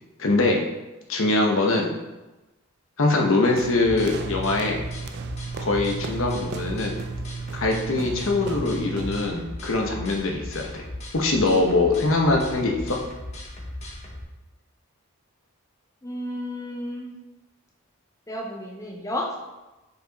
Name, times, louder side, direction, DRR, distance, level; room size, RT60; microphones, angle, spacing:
voice 1, 0.2-0.6 1.1-1.9 3.0-4.8 5.6-7.0 7.5-10.8 11.1-13.0, left 2 dB, 65° left, 1 dB, 0.9 m, -23 dB
sound 1, 3.6-14.2, left 1 dB, 30° left, 1.0 m, -38 dB
sound 2, 3.6-9.4, right 5 dB, 50° right, 0.3 m, -34 dB
voice 2, 16.0-17.1 18.3-19.4, left 1 dB, 15° left, -1 dB, 0.5 m, -32 dB
5.3 x 4.9 x 3.9 m, 1.1 s
head